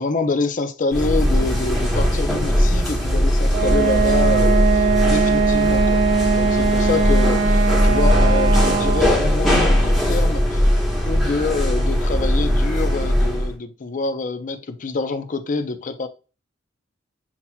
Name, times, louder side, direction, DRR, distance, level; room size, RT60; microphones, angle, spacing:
voice 1, 0.0-10.7 11.1-16.1, left 3 dB, 40° left, 0.5 m, -26 dB
sound 1, 0.9-13.5, equal, ahead, 1.3 m, -19 dB
Wind instrument woodwind instrument, 3.5-9.2, right 5 dB, 65° right, 0.8 m, -20 dB
7.2 x 2.8 x 2.2 m
head